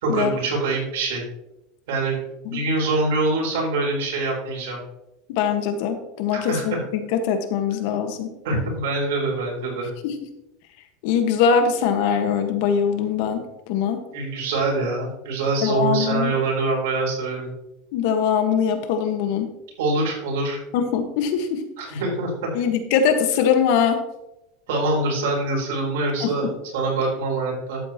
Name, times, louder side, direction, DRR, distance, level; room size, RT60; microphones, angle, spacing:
voice 1, 0.0-1.2 1.9-2.2 2.4-4.8 6.3-6.8 8.4-9.9 14.1-17.5 19.8-20.6 21.8-22.3 24.7-27.8, right 3 dB, 85° right, -2 dB, 4.1 m, -24 dB
voice 2, 5.4-8.3 10.0-10.1 11.0-14.0 15.6-16.3 17.9-19.5 20.7-21.6 21.9-22.0 22.5-24.0 26.2-26.3, left 7 dB, 65° left, 7 dB, 1.5 m, -22 dB
12.0 x 8.5 x 3.0 m, 0.90 s
supercardioid pair, 140°, 0 cm